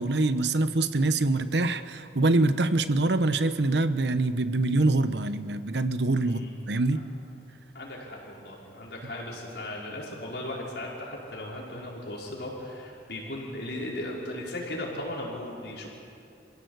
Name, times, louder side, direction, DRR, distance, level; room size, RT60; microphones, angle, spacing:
voice 1, 0.0-6.4 6.7-7.0, right 2 dB, 80° right, 12 dB, 1.0 m, -24 dB
voice 2, 6.2-6.5 7.7-15.9, left 1 dB, 75° left, -3 dB, 5.1 m, -37 dB
27.0 x 16.0 x 8.1 m, 2.7 s
head